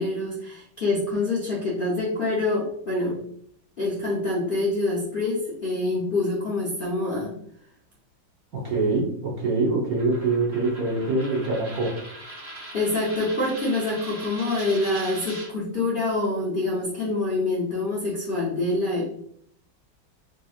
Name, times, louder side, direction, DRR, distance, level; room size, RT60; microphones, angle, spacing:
voice 1, 0.0-3.2 3.8-7.4 12.7-19.1, left 2 dB, 65° left, -5 dB, 0.5 m, -26 dB
voice 2, 8.5-11.9, right 3 dB, 55° right, -3 dB, 1.2 m, -24 dB
Coin (dropping), 10.0-15.5, right 2 dB, 30° right, 1.7 m, -40 dB
4.0 x 3.3 x 2.3 m, 0.67 s
omnidirectional pair, 2.2 m